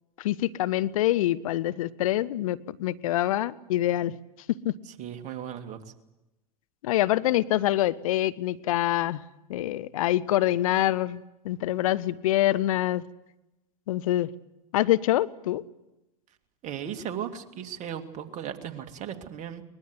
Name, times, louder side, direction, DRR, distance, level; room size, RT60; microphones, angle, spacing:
voice 1, 0.2-4.1 4.6-4.7 6.8-9.2 9.5-13.0 13.9-14.3 14.7-15.6, left 14 dB, 65° left, 16 dB, 0.8 m, -25 dB
voice 2, 5.0-5.8 16.6-19.6, right 9 dB, 40° right, 6 dB, 2.4 m, -36 dB
23.0 x 21.0 x 7.9 m, 0.98 s
hypercardioid pair, 95°, 19 cm